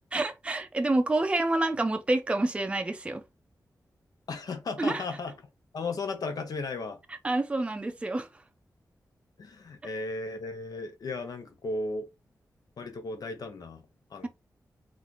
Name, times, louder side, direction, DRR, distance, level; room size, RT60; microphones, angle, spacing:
voice 1, 0.1-3.2 4.8-5.0 7.2-8.3, right 2 dB, 20° right, 0.4 m, -28 dB
voice 2, 4.3-5.3 5.7-7.0 9.4-12.1 12.8-13.8 14.1-14.3, left 3 dB, 75° left, 0.7 m, -35 dB
3.9 x 2.5 x 2.9 m
wide cardioid pair, 130°, 7 cm